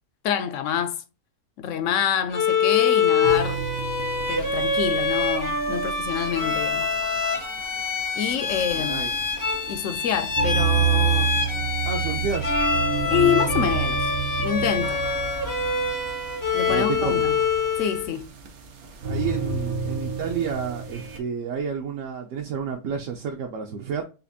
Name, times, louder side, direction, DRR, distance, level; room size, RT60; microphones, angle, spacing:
voice 1, 0.2-1.0 1.6-3.6 4.3-6.9 8.2-9.0 9.7-11.3 13.1-14.1 14.4-15.0 16.5-17.4 17.8-18.3, left 9 dB, 70° left, 0.8 m, -27 dB
Bowed string instrument, 2.3-18.1, left 4 dB, 25° left, 0.4 m, -25 dB
sound 1, 3.2-21.2, right 8 dB, 85° right, 1.3 m, -30 dB
voice 2, 8.8-9.1 11.9-12.6 16.7-17.1 19.1-24.0, right 6 dB, 70° right, 1.0 m, -30 dB
4.1 x 2.5 x 2.5 m
omnidirectional pair, 1.5 m